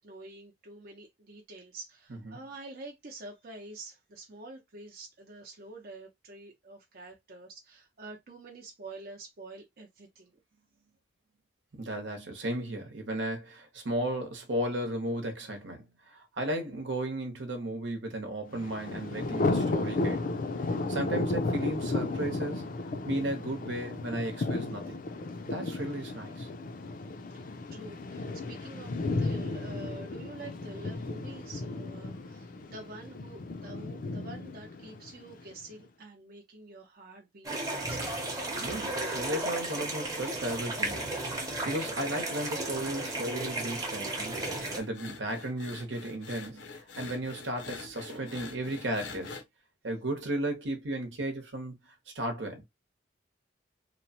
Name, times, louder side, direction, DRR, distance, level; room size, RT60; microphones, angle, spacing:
voice 1, 0.0-10.3 27.3-38.1, right 2 dB, 55° right, 0.6 m, -47 dB
voice 2, 11.7-20.3 20.9-22.7 23.0-25.0 25.4-26.5 38.5-49.4 49.8-52.6, right 1 dB, 80° right, 0.9 m, -35 dB
Thunder, 18.5-35.5, left 2 dB, 45° left, 0.4 m, -34 dB
sound 1, 37.4-44.8, right 2 dB, 20° right, 0.7 m, -34 dB
sound 2, 44.3-49.4, left 4 dB, 85° left, 0.7 m, -45 dB
2.9 x 2.1 x 2.8 m
head